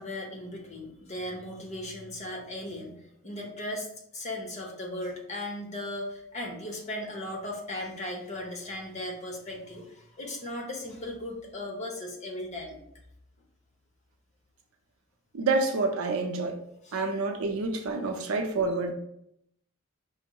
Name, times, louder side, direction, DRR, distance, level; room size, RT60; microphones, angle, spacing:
voice 1, 0.0-3.9 4.1-12.8 16.8-17.0, left 1 dB, 30° left, 0.9 m, -37 dB
voice 2, 15.3-16.6 16.9-18.9, right 3 dB, 80° right, 0.6 m, -28 dB
5.2 x 2.0 x 4.5 m
head